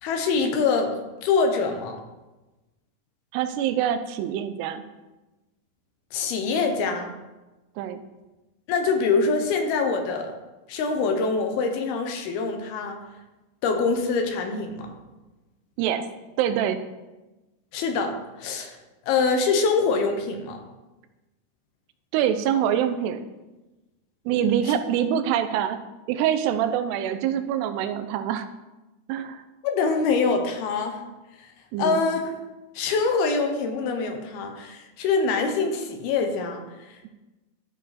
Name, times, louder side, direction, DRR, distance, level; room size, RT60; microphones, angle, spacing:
voice 1, 0.0-2.0 6.1-7.1 8.7-10.3 10.7-13.0 13.6-14.9 17.7-18.8 19.1-20.6 24.7-24.8 29.6-31.0 31.4-31.5 31.8-32.2 32.8-37.1, left 4 dB, 75° left, 4 dB, 2.8 m, -24 dB
voice 2, 3.3-4.8 7.8-8.0 15.8-16.0 16.4-16.8 22.1-23.3 24.3-25.8 26.1-28.5 29.1-29.4 31.7-32.0, right 9 dB, 90° right, 10 dB, 2.8 m, -25 dB
14.0 x 5.3 x 4.2 m, 1.1 s
omnidirectional pair, 4.7 m